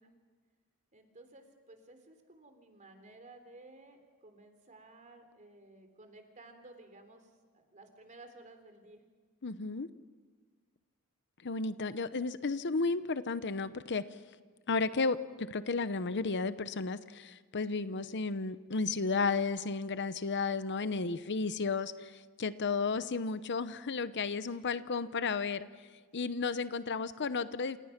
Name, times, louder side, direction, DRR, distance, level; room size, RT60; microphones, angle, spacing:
voice 1, 0.9-9.0 25.0-25.1, right 2 dB, 35° right, 6 dB, 3.4 m, -55 dB
voice 2, 9.4-9.9 11.4-14.0 14.7-25.7 26.1-27.8, left 4 dB, 55° left, 13 dB, 0.8 m, -33 dB
28.0 x 28.0 x 5.9 m, 1.4 s
head